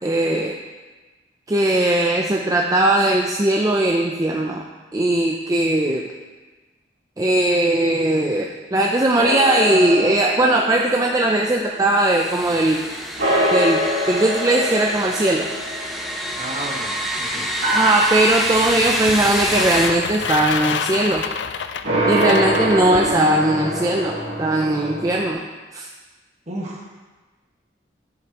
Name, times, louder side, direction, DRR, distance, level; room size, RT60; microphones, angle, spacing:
voice 1, 0.0-0.5 1.5-4.6 4.9-6.1 7.2-12.8 13.5-15.5 17.7-21.2 22.0-25.5 25.7-25.9, right 1 dB, 20° right, 0 dB, 0.5 m, -19 dB
sound 1, 9.2-12.8 13.2-17.0 17.6-19.4 21.8-25.3, equal, 65° right, 2.3 m, -25 dB
sound 2, 11.9-19.9, equal, ahead, 0.9 m, -28 dB
voice 2, 16.4-17.5 26.5-26.9, right 1 dB, 40° right, -1 dB, 1.5 m, -32 dB
sound 3, 19.1-23.2, left 6 dB, 70° left, 0.4 m, -28 dB
13.5 x 6.6 x 2.9 m, 1.3 s
head